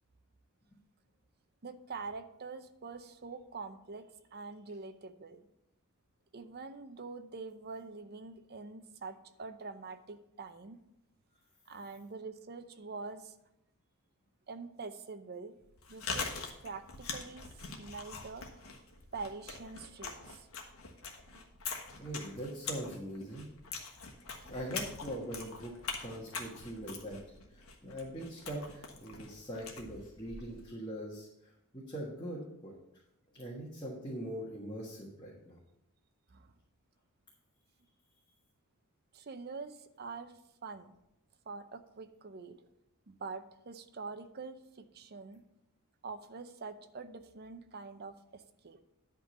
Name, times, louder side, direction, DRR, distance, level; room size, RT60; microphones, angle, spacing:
voice 1, 1.6-5.4 6.3-10.8 11.7-13.3 14.5-15.6 15.9-16.3 16.6-18.8 19.1-20.5 36.3-36.5 39.1-40.9 41.5-42.7 43.1-45.4 46.0-48.8, right 4 dB, 45° right, 10 dB, 0.6 m, -45 dB
Chewing mastication, 15.6-30.7, left 4 dB, 65° left, 1.4 m, -43 dB
voice 2, 22.0-23.5 24.4-25.7 26.0-27.2 27.5-32.7 33.3-35.6, equal, 20° left, -4 dB, 1.4 m, -42 dB
10.5 x 3.8 x 6.7 m, 0.84 s
head